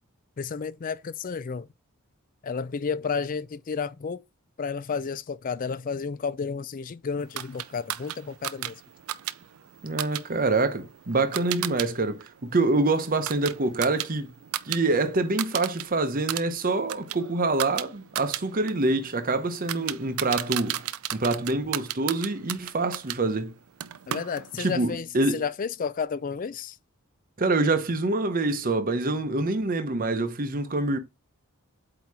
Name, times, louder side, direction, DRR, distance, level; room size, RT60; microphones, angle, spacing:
voice 1, 0.4-1.7 2.4-4.2 4.6-8.8 24.1-26.8, left 5 dB, 40° left, 0.4 m, -31 dB
sound 1, 7.3-11.9 12.2-14.8 15.1-15.8 16.1-23.2 23.8-24.7, right 12 dB, 75° right, 0.5 m, -34 dB
voice 2, 9.8-14.3 14.6-23.5 24.6-25.4 27.4-31.0, right 2 dB, 40° right, 0.8 m, -26 dB
8.2 x 2.9 x 4.7 m
head